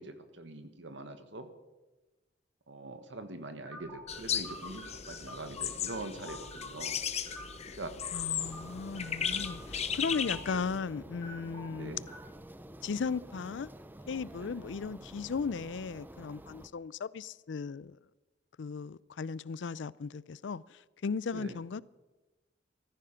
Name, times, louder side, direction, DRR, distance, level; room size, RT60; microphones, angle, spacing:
voice 1, 0.0-1.5 2.7-7.0 7.7-8.0 10.5-10.6 11.7-12.1 14.4-14.5 21.3-21.5, right 2 dB, 80° right, 1.6 m, -43 dB
sound 1, 3.7-13.2, left 1 dB, 15° left, 6.2 m, -50 dB
sound 2, 4.1-10.8, left 8 dB, 35° left, 0.8 m, -36 dB
voice 2, 8.1-12.0 12.8-13.7 14.1-18.0 18.6-21.8, left 5 dB, 75° left, 0.4 m, -36 dB
sound 3, 8.4-16.7, right 1 dB, 10° right, 0.6 m, -49 dB
15.0 x 13.5 x 5.7 m
head